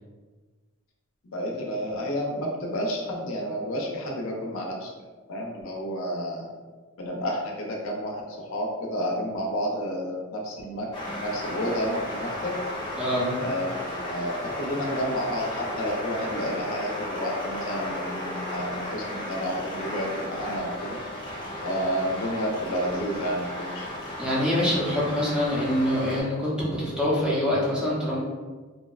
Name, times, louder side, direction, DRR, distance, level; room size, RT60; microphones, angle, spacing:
voice 1, 1.2-4.9 5.3-6.5 7.0-10.9 11.2-12.5 13.4-21.0 21.6-23.9, equal, 85° left, -1 dB, 0.5 m, -30 dB
sound 1, 10.9-26.2, left 1 dB, 25° left, 0.7 m, -34 dB
voice 2, 13.0-13.3 24.2-28.2, left 1 dB, 5° right, -7 dB, 0.6 m, -25 dB
2.7 x 2.0 x 2.3 m, 1.4 s
head